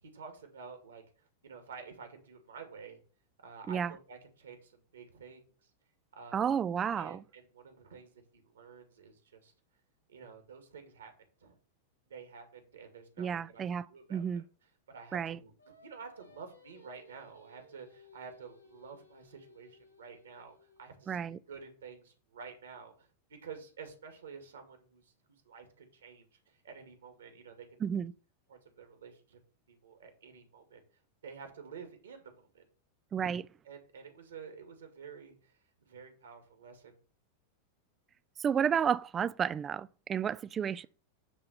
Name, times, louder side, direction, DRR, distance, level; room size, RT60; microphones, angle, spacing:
voice 1, 0.0-3.0 3.4-5.5 6.1-6.5 7.0-9.5 10.1-11.1 11.4-11.6 12.1-13.6 13.9-14.4 14.9-25.1 25.4-28.1 28.5-29.4 29.7-30.8 31.2-32.6 33.6-35.5 35.9-37.0 40.7-40.9, right 5 dB, 65° right, 2.3 m, -50 dB
voice 2, 6.3-7.2 13.2-13.9 14.1-14.4 15.1-15.4 21.1-21.4 27.8-28.1 33.1-33.5 38.4-40.9, right 7 dB, 25° right, 0.4 m, -31 dB
Singing, 15.6-21.0, left 2 dB, 85° left, 1.4 m, -60 dB
9.9 x 3.7 x 6.7 m
figure-of-eight pair, 90°, 0 cm